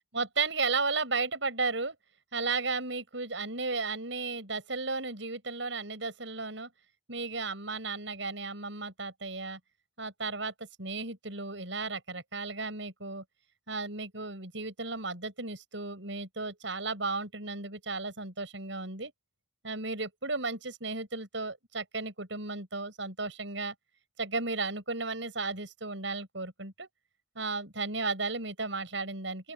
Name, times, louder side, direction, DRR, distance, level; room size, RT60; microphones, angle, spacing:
voice 1, 0.1-2.0 2.3-6.7 7.1-9.6 10.0-13.2 13.7-19.1 19.6-23.7 24.2-26.9 27.4-29.5, right 3 dB, 70° right, 6.8 m, -34 dB
open air
head